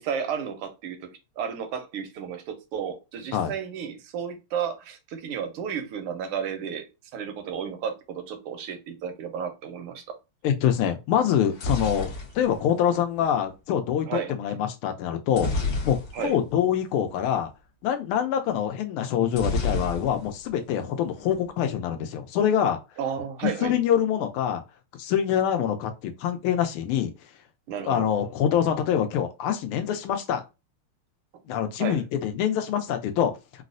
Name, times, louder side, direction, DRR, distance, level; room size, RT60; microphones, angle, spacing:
voice 1, 0.0-6.9 7.1-10.0 14.1-14.3 16.1-16.3 23.0-23.8 27.7-28.1 31.8-32.0, right 7 dB, 85° right, 1.6 m, -32 dB
voice 2, 10.4-12.1 12.3-15.5 15.8-17.5 17.8-22.8 23.6-24.6 25.0-27.1 27.8-30.4 31.5-33.3, left 9 dB, 80° left, 1.5 m, -25 dB
sound 1, 11.3-13.4 15.3-16.5 16.8-16.9 17.2-17.4 19.3-20.5 20.8-21.4, left 2 dB, 55° left, 1.1 m, -30 dB
4.0 x 2.0 x 2.5 m
omnidirectional pair, 2.4 m